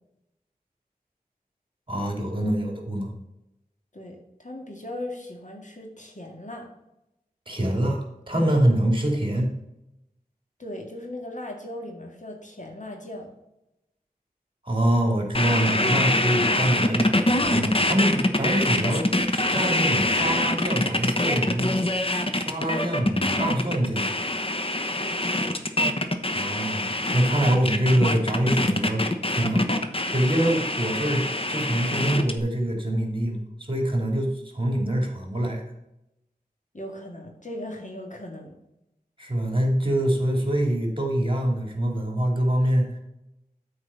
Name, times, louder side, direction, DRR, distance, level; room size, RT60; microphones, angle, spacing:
voice 1, 1.9-3.1 7.5-9.5 14.6-21.8 22.3-24.1 26.3-29.7 30.1-35.7 39.2-42.8, right 1 dB, 30° right, 1 dB, 2.7 m, -25 dB
voice 2, 3.9-6.7 10.6-13.3 25.0-25.9 36.7-38.6, left 1 dB, 50° left, 1 dB, 2.1 m, -38 dB
sound 1, 15.3-32.4, left 1 dB, 35° left, 1.0 m, -24 dB
8.7 x 4.8 x 6.9 m, 0.87 s
wide cardioid pair, 40°, 16 cm